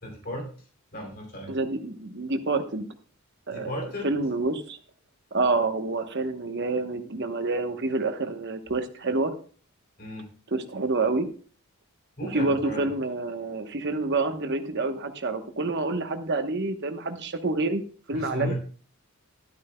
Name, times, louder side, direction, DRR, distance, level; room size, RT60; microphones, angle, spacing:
voice 1, 0.0-0.5 0.9-1.5 3.5-4.1 10.0-10.3 12.2-12.9 18.1-18.5, left 1 dB, 45° left, 0 dB, 2.9 m, -35 dB
voice 2, 1.5-2.9 3.5-3.7 4.0-4.8 5.3-9.3 10.5-11.3 12.2-17.8 18.1-18.5, right 3 dB, 50° right, 7 dB, 1.1 m, -28 dB
12.5 x 12.0 x 2.2 m, 0.40 s
head